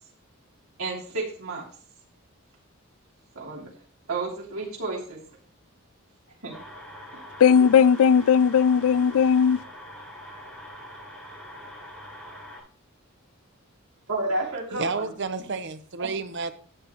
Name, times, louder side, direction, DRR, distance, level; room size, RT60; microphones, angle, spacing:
voice 1, 0.8-1.6 3.3-3.7 4.1-5.2 6.4-6.5 7.1-7.2 14.1-15.1 16.0-16.1, right 2 dB, 85° right, 3.2 m, -31 dB
sound 1, 6.5-12.6, equal, 5° left, 5.9 m, -43 dB
voice 2, 7.4-9.6, left 7 dB, 75° left, 0.3 m, -18 dB
voice 3, 14.7-16.5, right 4 dB, 55° right, 0.9 m, -31 dB
12.0 x 8.8 x 3.1 m
head